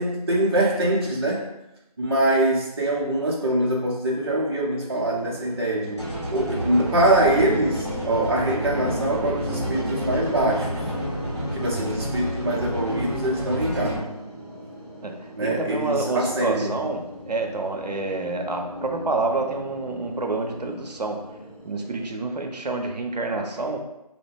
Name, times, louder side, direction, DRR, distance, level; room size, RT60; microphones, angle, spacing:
voice 1, 0.0-1.4 2.0-6.0 6.3-10.8 11.5-14.1 15.4-16.7, right 1 dB, 40° right, -4 dB, 0.6 m, -23 dB
sound 1, 4.9-22.1, left 1 dB, 10° left, 1.3 m, -38 dB
sound 2, 6.0-14.0, equal, 45° left, 1.2 m, -30 dB
voice 2, 15.0-21.3 21.6-23.8, right 3 dB, 85° right, 4 dB, 0.6 m, -28 dB
2.6 x 2.1 x 3.4 m, 0.91 s
figure-of-eight pair, 165°, 20 cm